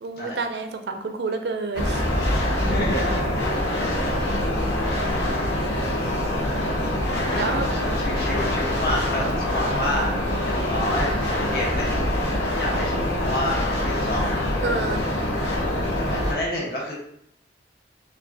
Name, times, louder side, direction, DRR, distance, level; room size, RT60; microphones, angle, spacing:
voice 1, 0.0-2.0 7.4-7.6 14.6-15.0, right 3 dB, 70° right, 6 dB, 0.4 m, -28 dB
sound 1, 1.7-16.3, left 1 dB, 75° left, 0.9 m, -24 dB
voice 2, 2.6-3.5 5.8-6.3 7.3-10.2 10.4-12.1 12.5-14.3 16.0-16.9, left 1 dB, 60° left, -4 dB, 1.2 m, -29 dB
5.3 x 2.4 x 2.7 m, 0.71 s
head